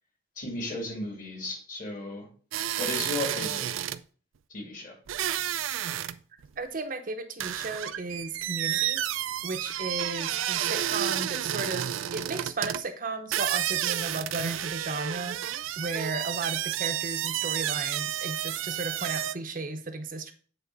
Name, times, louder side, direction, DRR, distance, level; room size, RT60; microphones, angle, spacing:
voice 1, 0.4-2.3 2.8-3.7 4.5-5.0, left 2 dB, 40° left, 0 dB, 2.5 m, -35 dB
sound 1, 2.5-4.0 5.1-6.2 6.4-6.5 7.4-12.8 13.3-19.3, right 11 dB, 85° right, 0.4 m, -31 dB
voice 2, 6.6-9.0 9.4-20.3, right 3 dB, 45° right, 7 dB, 0.7 m, -35 dB
8.1 x 3.5 x 5.3 m, 0.41 s
head